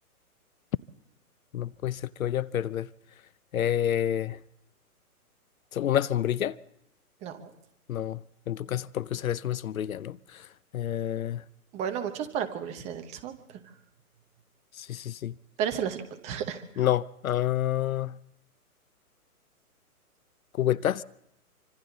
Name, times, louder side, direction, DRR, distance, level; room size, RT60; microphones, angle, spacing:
voice 1, 1.5-2.9 3.5-4.4 5.7-6.6 7.9-8.2 8.5-10.2 10.7-11.4 14.8-15.3 16.8-18.1 20.6-21.0, left 11 dB, 65° left, 0.7 m, -28 dB
voice 2, 7.2-7.5 11.7-13.3 15.6-16.9, right 8 dB, 15° right, 0.9 m, -33 dB
25.5 x 25.5 x 4.0 m
hypercardioid pair, 145°, 45 cm